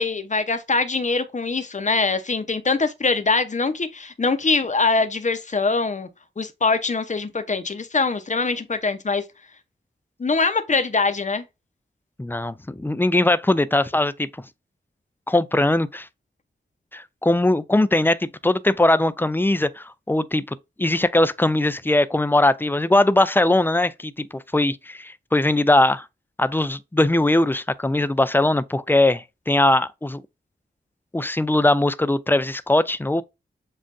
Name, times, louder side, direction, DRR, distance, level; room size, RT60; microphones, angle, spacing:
voice 1, 0.0-6.1 6.4-9.2 10.2-11.4, left 4 dB, 40° left, 0.8 m, -23 dB
voice 2, 12.2-14.3 15.3-16.1 16.9-26.1 26.4-30.2 31.1-33.2, left 1 dB, 10° left, 0.4 m, -20 dB
7.4 x 2.5 x 2.5 m
wide cardioid pair, 75°, 19 cm